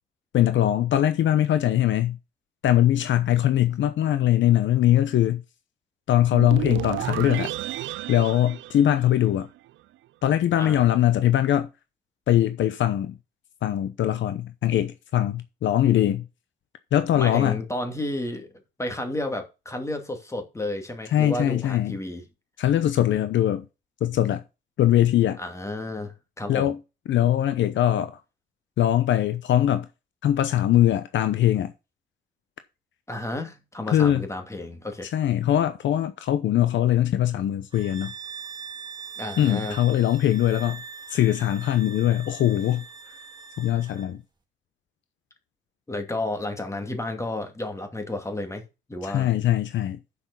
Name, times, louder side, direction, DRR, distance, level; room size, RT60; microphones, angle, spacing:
voice 1, 0.3-2.2 2.6-5.4 6.1-7.5 8.1-9.5 10.2-11.7 12.3-13.2 13.6-16.3 16.9-17.6 21.1-21.9 22.6-23.7 24.0-24.4 24.8-25.4 26.5-26.8 27.1-28.2 28.8-29.9 30.2-31.7 33.9-34.2 35.1-38.1 39.4-40.8 41.1-42.8 43.6-44.2 49.0-50.0, left 12 dB, 70° left, 0.8 m, -21 dB
sound 1, 6.3-9.6, right 15 dB, 75° right, 0.4 m, -32 dB
voice 2, 10.6-10.9 17.1-18.5 18.8-22.3 25.4-26.8 33.1-35.1 39.2-39.8 45.9-48.6 48.9-49.3, left 1 dB, 15° left, 2.5 m, -32 dB
sound 2, 37.7-44.1, right 6 dB, 20° right, 1.8 m, -41 dB
6.9 x 5.8 x 6.9 m
cardioid pair, 90°, 20 cm